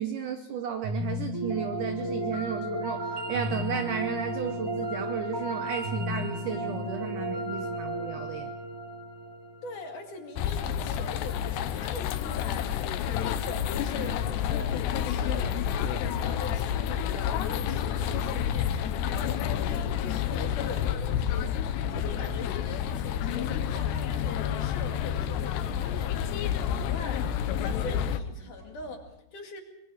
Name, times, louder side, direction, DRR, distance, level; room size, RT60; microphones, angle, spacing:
voice 1, 0.0-8.5, right 8 dB, 85° right, 7 dB, 1.8 m, -34 dB
sound 1, 0.8-10.0, equal, 5° right, 4.2 m, -33 dB
voice 2, 9.6-15.6 15.9-20.0 20.3-29.6, left 3 dB, 50° left, 3 dB, 3.4 m, -42 dB
sound 2, 10.4-28.2, left 9 dB, 75° left, 3.0 m, -29 dB
sound 3, 12.4-29.1, right 1 dB, 50° right, 9.5 m, -52 dB
24.5 x 22.0 x 4.9 m, 0.81 s
omnidirectional pair, 5.1 m